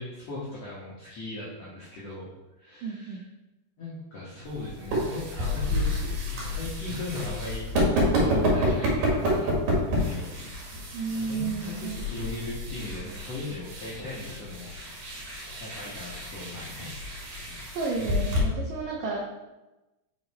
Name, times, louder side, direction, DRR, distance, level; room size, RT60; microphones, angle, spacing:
voice 1, 0.0-2.3 2.6-3.2 3.8-7.7 8.1-10.8 11.1-14.7 15.6-16.9 17.4-17.6, left 2 dB, 85° left, -8 dB, 1.4 m, -38 dB
voice 2, 2.8-3.2 10.9-12.4 17.8-19.3, right 4 dB, 80° right, -2 dB, 1.9 m, -32 dB
sound 1, 4.4-18.4, equal, 60° right, 2.9 m, -29 dB
6.4 x 4.9 x 4.2 m, 1.0 s
omnidirectional pair, 5.1 m